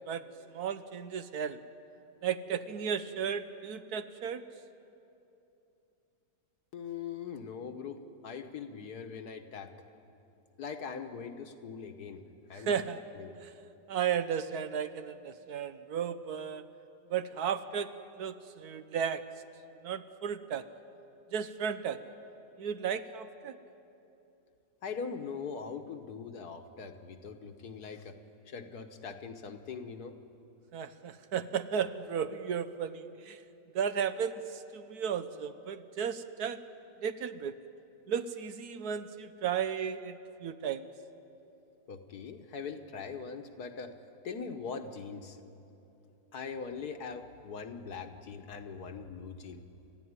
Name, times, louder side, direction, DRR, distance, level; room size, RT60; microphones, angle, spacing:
voice 1, 0.5-1.6 2.2-4.4 12.5-13.0 13.4-13.5 13.9-16.6 17.1-17.9 18.2-19.2 19.8-20.7 21.3-22.0 22.6-23.6 30.7-33.4 33.7-36.6 37.0-37.5 38.1-40.9, right 7 dB, 70° right, 11 dB, 1.3 m, -34 dB
voice 2, 6.7-8.0 8.2-9.7 10.6-12.2 12.5-12.8 13.1-13.3 24.8-28.2 28.5-30.1 41.9-43.9 44.2-45.4 46.3-49.6, left 5 dB, 65° left, 7 dB, 1.7 m, -41 dB
29.0 x 14.0 x 9.6 m, 2.9 s
omnidirectional pair, 1.8 m